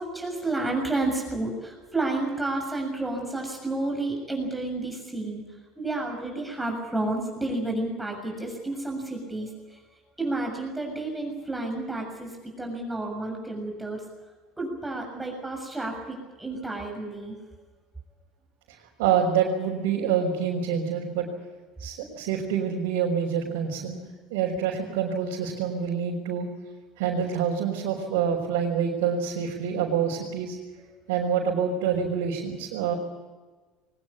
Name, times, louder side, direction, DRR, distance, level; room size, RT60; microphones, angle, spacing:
voice 1, 0.0-9.8 10.2-14.1 14.6-17.4, right 2 dB, 10° right, 1 dB, 7.0 m, -31 dB
voice 2, 19.0-21.3 21.8-26.5 27.0-30.6 31.1-32.9, right 7 dB, 70° right, -4 dB, 4.9 m, -26 dB
22.5 x 19.0 x 8.5 m, 1.3 s
hypercardioid pair, 75°, 0 cm